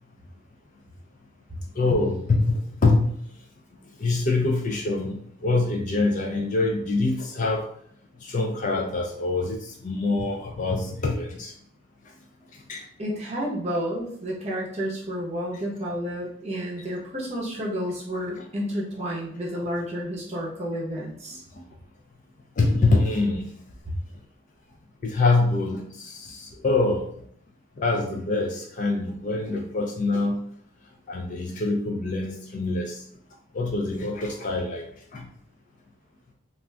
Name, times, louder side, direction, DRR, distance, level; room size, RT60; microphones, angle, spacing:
voice 1, 1.7-3.2 4.0-7.7 8.2-11.5 12.5-12.8 15.5-15.6 21.5-21.6 22.6-23.5 25.0-27.1 27.8-30.4 31.1-33.0 33.5-34.8 35.1-35.3, left 3 dB, 35° left, 1 dB, 0.3 m, -25 dB
voice 2, 13.0-21.4 23.9-24.0, equal, 30° right, -4 dB, 0.7 m, -31 dB
2.5 x 2.3 x 3.2 m, 0.65 s
head